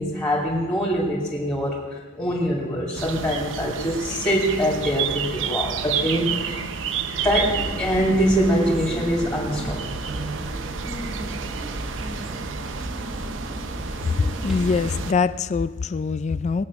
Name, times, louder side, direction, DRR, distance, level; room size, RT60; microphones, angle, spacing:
voice 1, 0.0-1.9 2.1-6.6 7.1-9.8, equal, 15° left, -4 dB, 2.5 m, -23 dB
sound 1, 3.0-15.1, right 6 dB, 75° right, 0.7 m, -31 dB
sound 2, 7.2-15.1, equal, ahead, 1.2 m, -34 dB
voice 2, 14.4-16.6, left 5 dB, 35° left, 15 dB, 0.3 m, -23 dB
20.5 x 8.6 x 6.2 m, 1.4 s
head